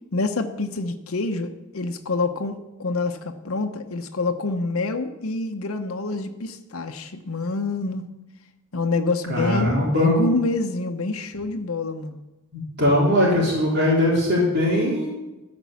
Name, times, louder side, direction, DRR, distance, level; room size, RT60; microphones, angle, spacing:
voice 1, 0.1-8.0 8.7-12.2, left 3 dB, 90° left, 7 dB, 0.9 m, -27 dB
voice 2, 9.3-10.2 12.5-15.1, left 1 dB, 55° right, -4 dB, 3.6 m, -20 dB
14.0 x 5.3 x 8.4 m, 1.0 s
head